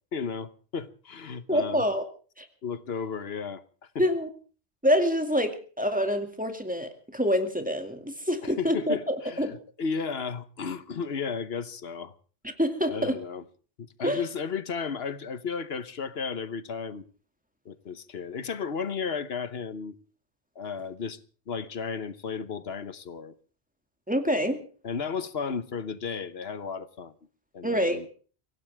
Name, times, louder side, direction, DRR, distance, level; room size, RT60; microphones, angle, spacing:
voice 1, 0.1-1.8 2.6-3.6 8.4-12.1 12.9-13.4 13.8-17.1 17.6-19.9 20.5-21.2 21.5-23.3 24.8-27.1 27.5-28.1, left 5 dB, 70° left, 1.3 m, -34 dB
voice 2, 1.5-2.0 2.4-2.5 4.0-4.3 4.8-9.5 12.4-13.2 14.0-14.2 24.1-24.6 27.6-28.1, equal, 10° right, 2.3 m, -26 dB
24.5 x 17.0 x 3.5 m
omnidirectional pair, 1.1 m